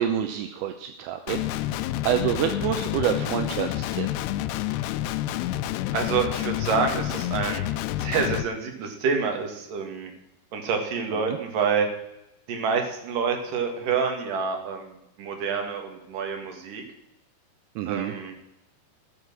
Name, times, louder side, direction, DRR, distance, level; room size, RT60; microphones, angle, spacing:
voice 1, 0.0-1.4 2.0-4.1 11.3-11.4 17.8-18.1, right 10 dB, 80° right, 7 dB, 2.6 m, -27 dB
Guitar, 1.3-8.4, left 14 dB, 85° left, 2.6 m, -29 dB
voice 2, 5.9-7.6 8.0-10.1 10.5-11.9 12.5-16.8 17.9-18.3, right 5 dB, 60° right, 4 dB, 3.2 m, -27 dB
15.5 x 6.6 x 6.2 m, 0.85 s
omnidirectional pair, 4.7 m